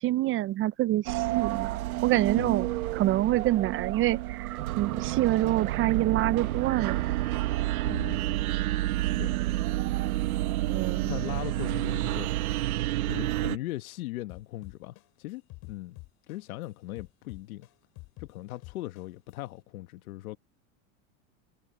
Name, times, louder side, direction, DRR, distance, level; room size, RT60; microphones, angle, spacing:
voice 1, 0.0-7.0 10.7-11.2, right 15 dB, 30° right, 0.5 m, -27 dB
sound 1, 1.1-13.6, right 16 dB, 85° right, 1.2 m, -29 dB
voice 2, 7.8-8.2 9.2-9.3 11.1-12.3 13.0-16.0 16.3-17.7 18.2-20.4, left 17 dB, 80° left, 1.2 m, -39 dB
sound 2, 14.3-16.6 17.0-19.3, left 24 dB, 55° left, 7.1 m, -47 dB
supercardioid pair, 110°, 42 cm